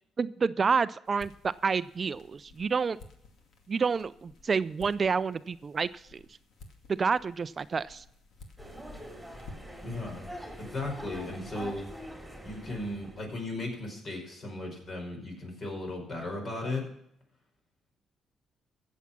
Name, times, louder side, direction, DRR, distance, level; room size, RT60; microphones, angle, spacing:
voice 1, 0.2-3.0 3.7-6.2 6.9-8.0, right 5 dB, 40° right, 16 dB, 0.4 m, -29 dB
sound 1, 1.0-9.9, left 3 dB, 70° left, 2.3 m, -54 dB
sound 2, 8.6-13.3, equal, ahead, 3.5 m, -44 dB
voice 2, 9.8-11.9 12.4-16.9, left 2 dB, 45° left, 2 dB, 5.5 m, -36 dB
15.5 x 7.3 x 6.0 m, 0.73 s
cardioid pair, 90°, 0 cm